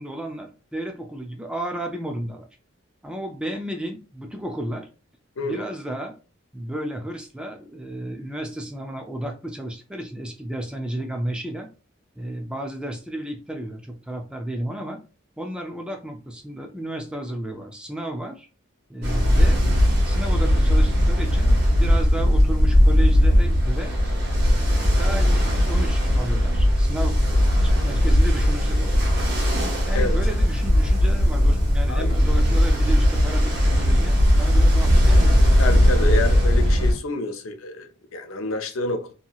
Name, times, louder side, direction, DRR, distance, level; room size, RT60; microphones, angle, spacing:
voice 1, 0.0-2.5 3.0-4.9 5.4-6.1 6.5-11.7 12.2-15.0 15.4-18.5 18.9-19.6 20.0-24.0 24.5-27.2 27.6-29.1 29.8-35.4, right 1 dB, 5° right, 0.3 m, -33 dB
voice 2, 5.4-5.7 29.9-30.2 31.9-32.1 35.6-39.1, left 2 dB, 80° left, 0.5 m, -28 dB
Ocean, 19.0-36.9, equal, 50° right, 1.2 m, -18 dB
2.8 x 2.7 x 2.3 m
head